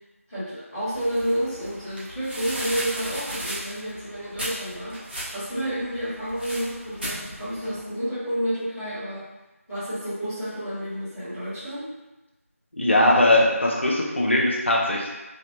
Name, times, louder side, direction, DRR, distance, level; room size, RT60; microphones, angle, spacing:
voice 1, 0.3-9.3 9.7-11.8, equal, 15° left, -17 dB, 1.4 m, -30 dB
sound 1, 0.9-7.8, right 1 dB, 45° right, 0.9 m, -36 dB
voice 2, 12.7-15.1, left 1 dB, 55° left, -2 dB, 0.7 m, -20 dB
3.1 x 2.9 x 2.7 m, 1.1 s
figure-of-eight pair, 175°, 8 cm